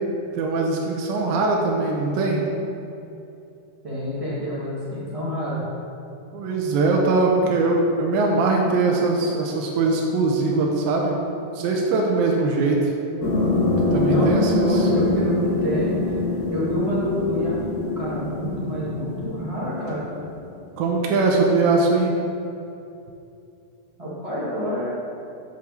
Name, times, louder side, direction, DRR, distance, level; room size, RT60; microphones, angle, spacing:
voice 1, 0.3-2.4 6.3-11.1 11.5-12.9 13.9-14.9 20.8-22.1, right 3 dB, 75° right, -1 dB, 2.3 m, -21 dB
voice 2, 3.8-5.6 14.1-20.0 24.0-24.9, left 1 dB, 40° right, -9 dB, 0.4 m, -28 dB
sound 1, 13.2-20.4, left 2 dB, 45° left, 2.9 m, -24 dB
6.2 x 5.8 x 6.5 m, 2.7 s
omnidirectional pair, 4.6 m